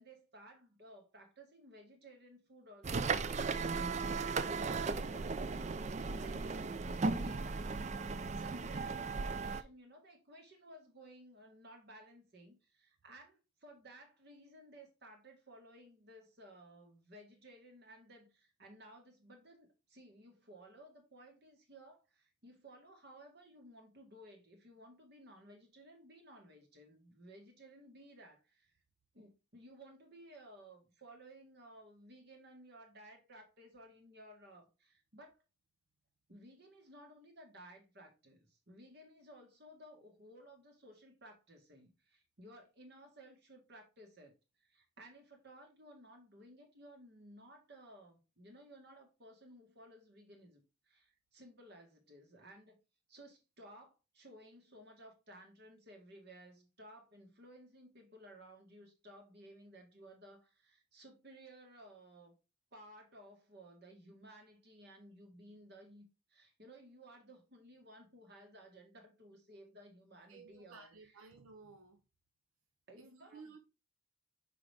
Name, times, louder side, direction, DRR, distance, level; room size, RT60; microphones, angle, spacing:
voice 1, 0.0-7.5 8.3-28.8 29.1-35.4 36.3-52.8 53.1-62.3 62.7-71.3 72.9-73.6, right 1 dB, 50° right, 1.8 m, -57 dB
sound 1, 2.8-9.6, right 4 dB, 35° right, 0.3 m, -36 dB
voice 2, 70.3-72.0 73.0-73.6, right 4 dB, 85° right, 0.7 m, -56 dB
5.8 x 5.0 x 3.5 m
head